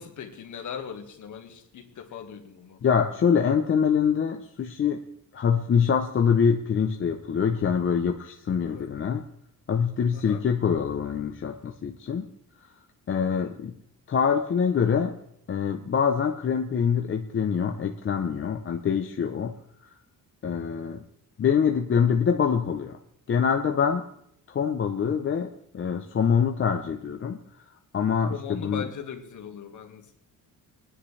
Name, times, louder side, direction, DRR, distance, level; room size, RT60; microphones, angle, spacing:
voice 1, 0.0-2.8 8.6-8.9 10.1-10.4 13.3-13.6 28.3-30.1, left 7 dB, 55° left, 5 dB, 1.8 m, -39 dB
voice 2, 2.8-5.0 5.3-9.2 9.7-12.3 13.1-13.7 14.1-15.1 15.5-19.5 20.4-21.0 21.4-23.0 23.3-24.0 24.5-27.4 27.9-28.9, left 7 dB, 35° left, 4 dB, 0.7 m, -24 dB
22.5 x 9.9 x 3.3 m, 0.74 s
cardioid pair, 165°, 36 cm